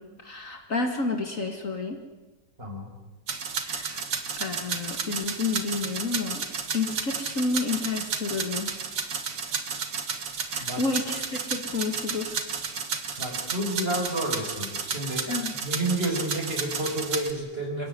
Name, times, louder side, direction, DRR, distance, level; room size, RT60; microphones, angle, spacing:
voice 1, 0.0-2.0 3.6-4.0 4.4-6.5 6.7-8.7 10.4-12.4 15.3-15.5, left 3 dB, 50° left, 4 dB, 2.6 m, -30 dB
voice 2, 2.6-2.9 10.6-10.8 13.2-15.3 15.6-17.9, right 1 dB, 30° right, 2 dB, 5.6 m, -30 dB
sound 1, 3.3-17.3, right 5 dB, 85° right, 2.5 m, -32 dB
28.0 x 15.5 x 9.6 m, 1.1 s
omnidirectional pair, 1.9 m